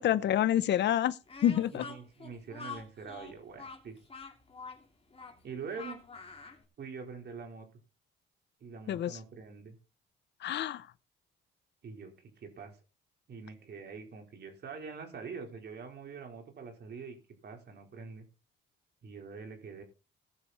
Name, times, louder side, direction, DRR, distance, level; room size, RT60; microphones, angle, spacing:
voice 1, 0.0-1.9 8.9-9.2 10.4-10.9, left 11 dB, 65° left, 0.7 m, -28 dB
Speech, 1.3-6.6, left 4 dB, 30° left, 3.1 m, -46 dB
voice 2, 1.7-4.0 5.4-6.0 6.8-7.7 8.6-9.8 11.8-12.7 13.3-17.2 17.4-18.2 19.0-19.8, right 5 dB, 55° right, 4.3 m, -44 dB
18.5 x 6.9 x 4.3 m
cardioid pair, 90°, 20 cm